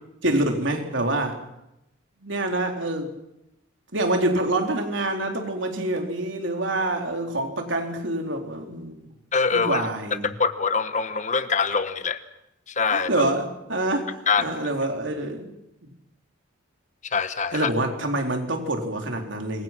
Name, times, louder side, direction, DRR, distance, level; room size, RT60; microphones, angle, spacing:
voice 1, 0.2-1.4 2.2-3.1 3.9-9.0 9.5-10.3 12.9-15.5 17.5-19.6, right 1 dB, 70° right, 3 dB, 4.0 m, -26 dB
voice 2, 9.3-9.9 10.2-12.2 12.7-13.1 14.3-14.5 17.1-17.7, left 5 dB, 40° left, 11 dB, 1.1 m, -24 dB
26.5 x 23.0 x 6.1 m, 0.85 s
head